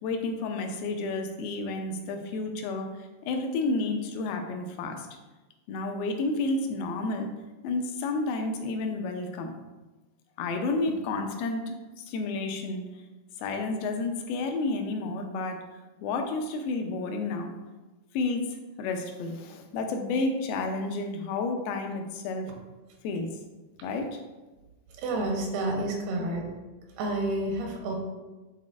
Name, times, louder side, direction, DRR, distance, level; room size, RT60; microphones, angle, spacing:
voice 1, 0.0-2.9 3.2-5.1 5.7-7.3 7.6-9.5 10.4-12.8 13.4-15.6 16.0-17.5 18.1-22.5 23.0-23.3 23.8-24.2, left 3 dB, 80° left, 4 dB, 2.4 m, -31 dB
voice 2, 25.0-26.5 27.0-27.9, right 2 dB, 85° right, 1 dB, 3.0 m, -29 dB
10.0 x 4.1 x 2.5 m, 1.2 s
omnidirectional pair, 4.4 m